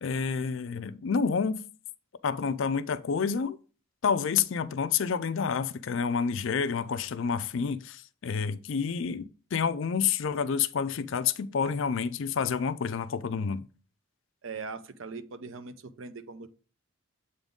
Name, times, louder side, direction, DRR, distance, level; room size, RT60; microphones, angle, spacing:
voice 1, 0.0-1.6 2.2-3.6 4.0-13.7, left 6 dB, 60° left, 0.4 m, -29 dB
voice 2, 14.4-16.5, right 4 dB, 65° right, 0.6 m, -40 dB
7.9 x 3.8 x 3.6 m
head